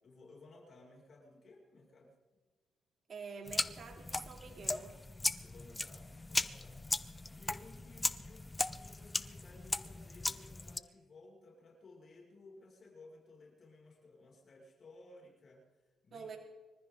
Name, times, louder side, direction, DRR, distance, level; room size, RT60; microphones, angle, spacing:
voice 1, 0.0-2.2 5.4-6.8 7.3-16.3, left 2 dB, 45° left, -1 dB, 6.2 m, -58 dB
voice 2, 3.1-4.9 16.1-16.4, right 5 dB, 50° right, 2 dB, 3.3 m, -47 dB
sound 1, 3.5-10.8, left 2 dB, 20° left, 0.7 m, -38 dB
25.5 x 14.5 x 3.9 m, 1.3 s
cardioid pair, 90°, 0 cm